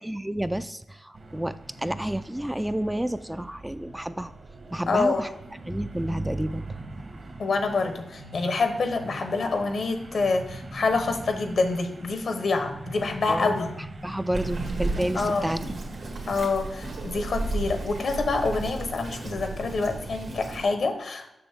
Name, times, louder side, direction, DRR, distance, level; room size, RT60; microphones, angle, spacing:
voice 1, 0.0-4.3 4.7-5.3 5.7-6.7 13.3-13.6 14.0-15.6, right 1 dB, 10° right, 11 dB, 0.3 m, -30 dB
sound 1, 1.1-17.0, right 2 dB, 60° right, 1.4 m, -41 dB
voice 2, 4.9-5.2 7.4-13.8 15.1-15.5 16.3-21.3, left 3 dB, 75° left, 6 dB, 1.0 m, -26 dB
Bird vocalization bird call bird song, 14.3-20.6, right 2 dB, 75° right, 1.7 m, -34 dB
6.9 x 6.3 x 3.6 m, 0.88 s
cardioid pair, 75°, 0 cm